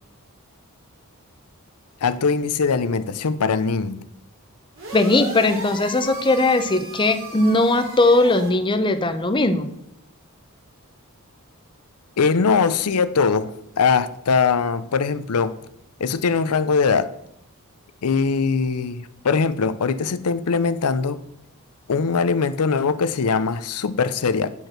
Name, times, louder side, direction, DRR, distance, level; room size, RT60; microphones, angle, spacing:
voice 1, 2.0-4.0 12.2-13.5 13.8-15.5 16.0-17.1 18.0-21.2 21.9-24.5, left 5 dB, 85° left, 0.6 m, -21 dB
sound 1, 4.8-8.5, right 2 dB, 60° right, 2.9 m, -36 dB
voice 2, 4.9-9.7, left 2 dB, 20° left, 0.6 m, -19 dB
9.8 x 4.5 x 6.4 m
head